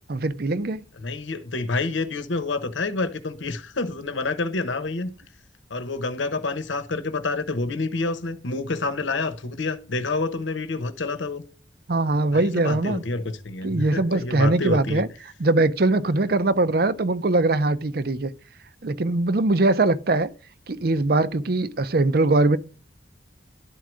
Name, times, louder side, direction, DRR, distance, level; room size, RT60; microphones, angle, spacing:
voice 1, 0.1-0.8 11.9-13.0 13.6-15.1 15.4-18.3 18.8-20.3 20.7-22.6, right 2 dB, 55° right, 0.6 m, -21 dB
voice 2, 1.0-5.1 5.7-11.4 12.3-15.0, left 3 dB, 85° left, 1.0 m, -28 dB
11.5 x 4.6 x 6.3 m
head